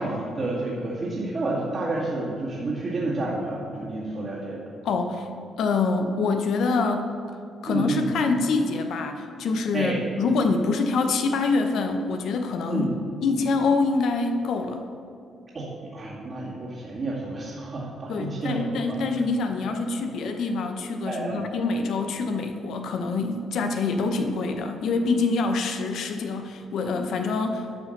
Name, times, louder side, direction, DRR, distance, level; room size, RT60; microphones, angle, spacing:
voice 1, 0.0-4.6 7.7-8.1 9.7-10.0 12.7-13.0 15.5-19.0 19.7-19.8 21.0-21.4, right 2 dB, 40° right, -9 dB, 2.2 m, -30 dB
voice 2, 4.8-5.3 5.6-7.1 7.6-12.9 13.2-14.8 18.1-27.7, left 4 dB, 70° left, 6 dB, 0.7 m, -25 dB
10.5 x 5.1 x 6.6 m, 2.5 s
cardioid pair, 90°, 0 cm